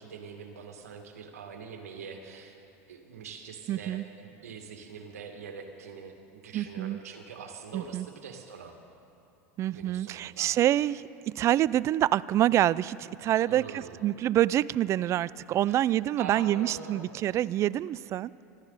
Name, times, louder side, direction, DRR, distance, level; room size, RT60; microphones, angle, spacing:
voice 1, 0.0-2.6 2.9-8.7 9.7-10.5 13.5-14.0 15.7-15.8 16.2-17.1, right 6 dB, 85° right, 4 dB, 1.9 m, -44 dB
voice 2, 3.7-4.0 6.5-7.0 7.7-8.1 9.6-18.3, right 12 dB, 40° right, 21 dB, 0.3 m, -26 dB
25.0 x 13.0 x 4.1 m, 2.7 s
hypercardioid pair, 100°, 8 cm